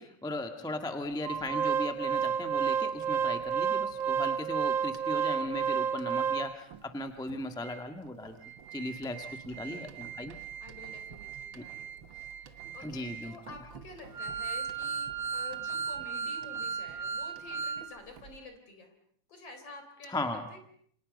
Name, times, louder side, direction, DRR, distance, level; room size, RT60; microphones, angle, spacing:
voice 1, 0.0-8.3 8.7-10.4 11.5-11.6 12.8-13.4 20.1-20.4, left 1 dB, ahead, 6 dB, 1.3 m, -37 dB
Organ, 1.2-6.8 7.3-7.4 7.6-7.8 8.3-17.9 18.2-18.3, right 7 dB, 50° right, 1.6 m, -33 dB
voice 2, 5.4-5.9 9.2-10.0 10.3-18.9 19.3-20.6, left 3 dB, 50° left, 6 dB, 4.9 m, -50 dB
28.5 x 26.0 x 5.5 m, 0.63 s
omnidirectional pair, 3.4 m